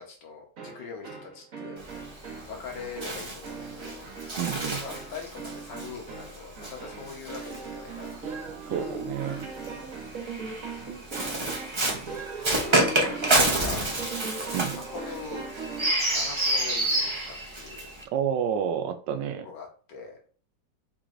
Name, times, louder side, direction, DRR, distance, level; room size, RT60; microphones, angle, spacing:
voice 1, 0.0-1.8 2.1-2.2 2.5-4.0 4.8-8.1 11.2-11.6 12.5-13.9 14.5-15.5 16.1-17.9 19.4-20.2, left 5 dB, 75° left, 1 dB, 1.8 m, -42 dB
sound 1, 0.6-16.0, right 4 dB, 50° right, 1.6 m, -39 dB
Bird, 1.8-8.3 9.2-18.0, right 1 dB, 30° right, 0.5 m, -29 dB
voice 2, 4.4-4.8 8.7-9.4 12.0-12.2 14.5-14.8 18.1-19.5, right 8 dB, 80° right, 8 dB, 1.2 m, -29 dB
4.6 x 4.0 x 2.6 m, 0.41 s
omnidirectional pair, 1.9 m